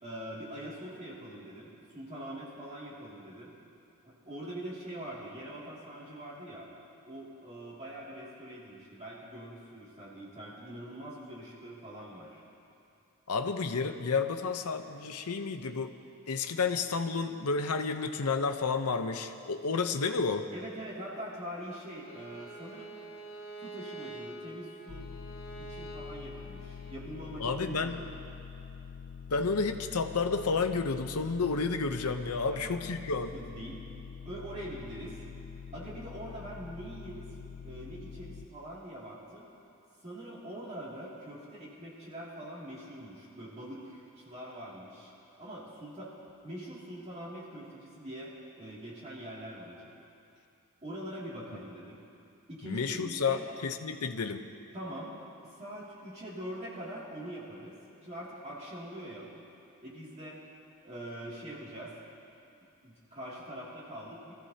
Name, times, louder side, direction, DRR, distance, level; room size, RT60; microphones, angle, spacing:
voice 1, 0.0-3.5 4.0-6.7 7.1-12.4 20.5-22.9 23.6-25.1 25.6-27.9 32.5-33.8 34.2-35.2 35.7-37.3 37.6-39.5 40.0-45.1 45.4-46.1 46.4-49.9 50.8-52.0 52.5-53.4 54.7-55.2 55.4-57.8 58.0-59.4 59.8-60.4 60.8-61.9 62.8-64.3, right 1 dB, 30° right, -7 dB, 2.5 m, -43 dB
voice 2, 13.3-15.9 16.3-20.5 27.4-28.0 29.3-33.3 52.6-54.4, left 4 dB, 85° left, 7 dB, 0.8 m, -31 dB
Bowed string instrument, 22.0-27.0, right 2 dB, 40° left, 1.8 m, -46 dB
sound 1, 24.9-38.5, left 6 dB, 65° left, 0.5 m, -46 dB
24.5 x 15.0 x 2.8 m, 2.6 s
head